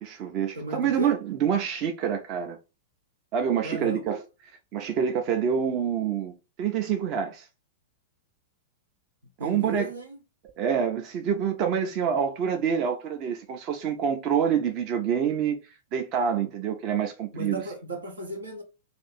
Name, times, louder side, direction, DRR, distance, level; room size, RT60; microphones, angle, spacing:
voice 1, 0.0-2.6 3.3-4.2 4.7-7.5 9.4-9.9 10.6-15.6 15.9-17.6, right 8 dB, 40° right, 0.6 m, -27 dB
voice 2, 0.5-1.2 3.6-4.2 9.4-10.2 17.3-18.6, right 1 dB, 80° right, 0.8 m, -35 dB
2.6 x 2.5 x 4.1 m
figure-of-eight pair, 95°, 0 cm